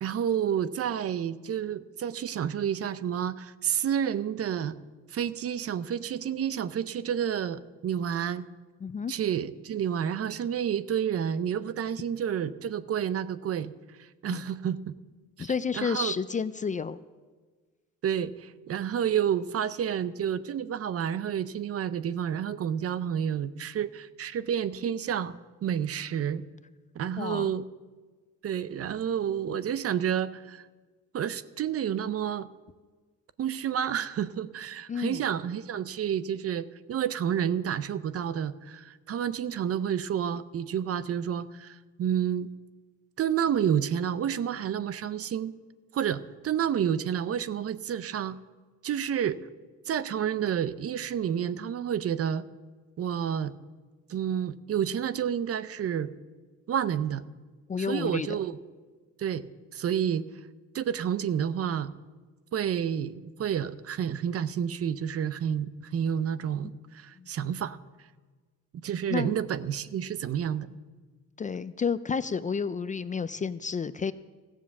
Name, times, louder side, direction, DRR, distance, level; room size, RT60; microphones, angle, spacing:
voice 1, 0.0-4.8 5.1-8.5 9.1-13.7 14.0-14.9 15.4-15.5 15.7-16.1 18.0-25.4 25.6-26.4 27.0-27.6 28.4-30.6 31.1-32.5 33.4-42.5 43.2-45.5 45.9-48.4 48.8-49.4 49.9-52.4 53.0-53.5 54.1-56.1 56.7-57.2 57.8-58.6 59.2-60.2 60.7-61.9 62.5-67.8 68.8-70.7, right 9 dB, 50° right, 15 dB, 0.6 m, -30 dB
voice 2, 8.8-9.1 14.3-14.4 15.4-17.0 27.2-27.5 34.9-35.3 57.7-58.3 67.2-67.3 69.1-69.3 71.4-74.1, left 6 dB, 25° left, 15 dB, 0.4 m, -30 dB
15.0 x 7.3 x 7.1 m, 1.4 s
cardioid pair, 90°, 30 cm